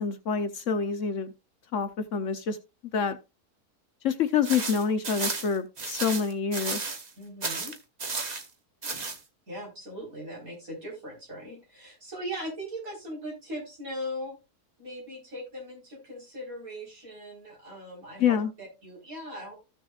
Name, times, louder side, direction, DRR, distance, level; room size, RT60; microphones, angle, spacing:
voice 1, 0.0-1.3 1.7-2.6 2.9-3.2 4.0-6.9 18.2-18.5, left 6 dB, 60° left, 9 dB, 1.0 m, -27 dB
sound 1, 4.4-7.1 7.4-8.5 8.8-9.2, right 4 dB, 30° right, 0.9 m, -33 dB
voice 2, 7.2-7.7 9.5-14.4 14.8-19.6, equal, 65° right, -1 dB, 4.7 m, -39 dB
14.5 x 6.4 x 2.4 m, 0.27 s
omnidirectional pair, 1.6 m